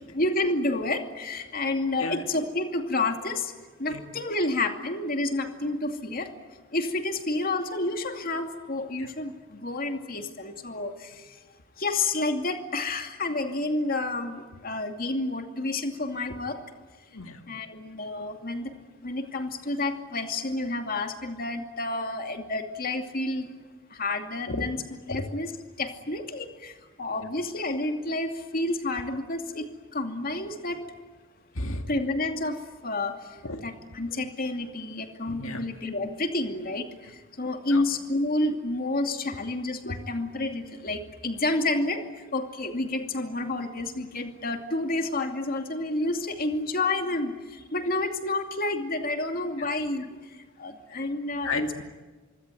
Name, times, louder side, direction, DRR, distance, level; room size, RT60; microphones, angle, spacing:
voice 1, 0.0-3.5 3.8-6.3 6.7-11.4 11.8-16.6 17.5-18.7 19.0-23.5 23.9-24.8 25.1-25.5 25.8-30.8 31.9-32.6 32.8-33.4 33.6-51.8, left 2 dB, 45° left, 5 dB, 2.5 m, -30 dB
voice 2, 17.1-17.5 24.5-24.7 25.1-25.3 27.2-27.3 31.5-31.9 33.4-33.7 35.3-35.7 37.0-37.1 37.7-37.8 39.8-40.0 49.6-49.7 50.9-51.0 51.4-51.8, left 3 dB, 80° left, 5 dB, 2.0 m, -34 dB
25.0 x 24.5 x 9.3 m, 1.3 s
head